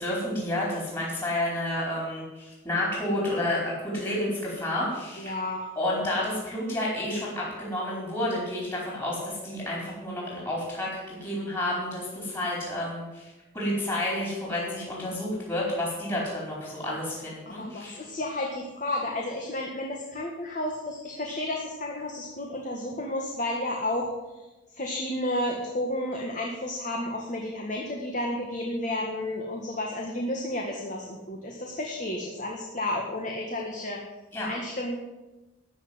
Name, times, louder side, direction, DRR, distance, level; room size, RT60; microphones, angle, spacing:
voice 1, 0.0-5.4 5.8-18.0 34.3-34.5, left 1 dB, 20° left, -4 dB, 4.4 m, -30 dB
voice 2, 5.2-5.7 17.5-24.1 24.3-24.5 24.7-34.0 34.5-35.0, left 1 dB, 40° left, 0 dB, 1.7 m, -32 dB
14.0 x 6.5 x 9.7 m, 1.1 s
head